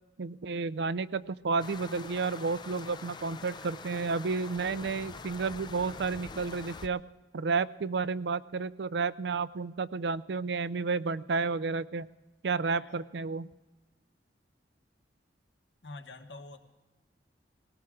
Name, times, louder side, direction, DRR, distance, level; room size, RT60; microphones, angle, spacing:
voice 1, 0.2-7.0 7.3-12.1 12.4-13.5, right 4 dB, 70° right, 16 dB, 0.4 m, -31 dB
sound 1, 1.6-6.9, left 4 dB, 25° left, 0.5 m, -45 dB
voice 2, 12.7-13.0 15.8-16.6, left 2 dB, 85° left, 6 dB, 1.3 m, -46 dB
19.5 x 18.0 x 3.7 m, 1.1 s
head